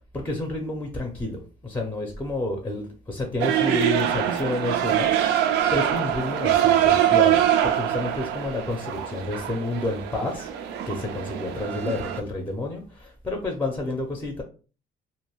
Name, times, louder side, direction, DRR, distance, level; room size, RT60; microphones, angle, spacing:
voice 1, 0.1-5.4 5.7-10.5 10.9-14.4, left 2 dB, 10° left, 2 dB, 0.5 m, -30 dB
sound 1, 3.4-12.2, right 11 dB, 85° right, 0.4 m, -23 dB
2.5 x 2.2 x 3.0 m, 0.36 s
cardioid pair, 110°, 17 cm